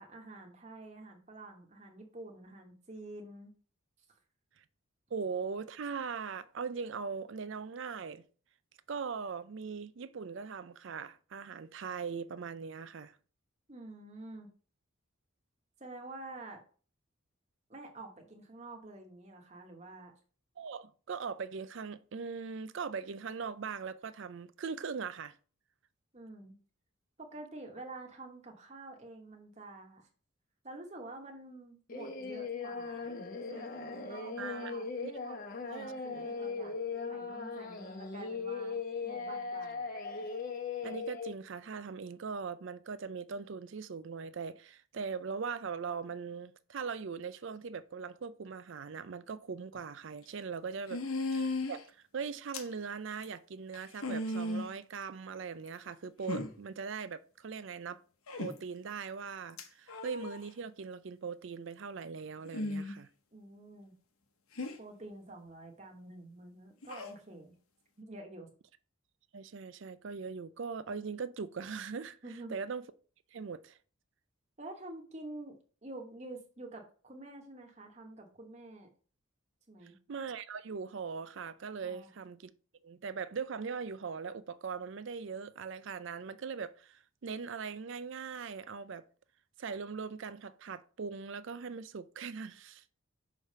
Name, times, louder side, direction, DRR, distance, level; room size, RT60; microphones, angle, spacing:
voice 1, 0.0-3.5 4.1-4.2 13.7-14.5 15.8-16.6 17.7-20.1 26.1-26.6 27.2-30.1 30.6-33.2 33.5-34.9 35.2-35.4 35.6-36.7 37.1-39.8 63.3-63.9 64.8-67.5 68.0-68.5 72.2-72.6 74.6-75.6 75.8-78.9 79.7-80.0 81.8-82.1, right 2 dB, 30° right, 1.1 m, -48 dB
voice 2, 5.1-8.2 8.9-13.2 20.6-25.4 34.4-34.7 35.0-35.1 35.7-36.3 40.8-51.0 51.3-58.0 58.4-63.1 69.3-72.2 72.5-72.8 73.3-73.8 80.1-82.5 82.8-89.0 89.6-92.9, right 5 dB, 60° right, 0.4 m, -40 dB
Singing, 31.9-41.3, left 4 dB, 40° left, 0.9 m, -39 dB
sound 1, 49.8-49.9 50.9-51.8 52.5-52.7 53.2-53.3 53.7-54.7 55.7-55.8 56.3-56.5 58.3-58.5 59.6-60.4 62.5-63.0 64.6-64.8 66.8-67.1, left 2 dB, 85° left, 0.9 m, -36 dB
6.1 x 3.3 x 5.4 m
head